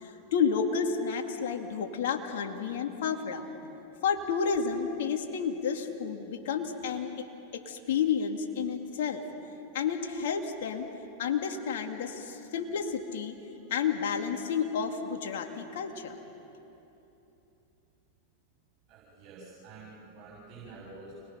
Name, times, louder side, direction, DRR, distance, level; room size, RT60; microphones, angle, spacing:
voice 1, 0.0-3.4 4.0-9.2 9.7-10.9 11.2-13.3 13.7-16.2, left 6 dB, 70° left, 3 dB, 2.5 m, -31 dB
voice 2, 18.9-21.1, right 3 dB, 45° right, -5 dB, 7.2 m, -48 dB
29.5 x 21.0 x 5.9 m, 2.9 s
hypercardioid pair, 100°, 0 cm